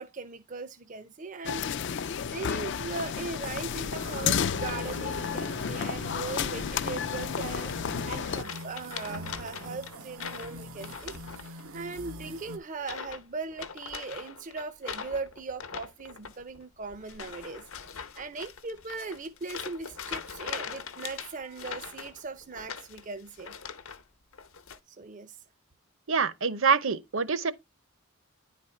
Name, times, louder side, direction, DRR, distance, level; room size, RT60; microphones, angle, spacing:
voice 1, 0.0-1.9 2.2-23.5 24.9-25.4, right 4 dB, 35° right, 0.5 m, -39 dB
sound 1, 1.4-8.4, left 7 dB, 55° left, 0.4 m, -31 dB
sound 2, 4.0-12.6, right 1 dB, 90° right, 1.1 m, -43 dB
sound 3, 6.1-6.7 7.3-8.0 8.3-11.8 12.0-12.4 12.8-13.2 13.5-24.0 24.3-24.8, left 6 dB, 75° left, 0.9 m, -42 dB
voice 2, 26.1-27.5, right 5 dB, 65° right, 0.8 m, -25 dB
10.0 x 4.2 x 4.3 m
head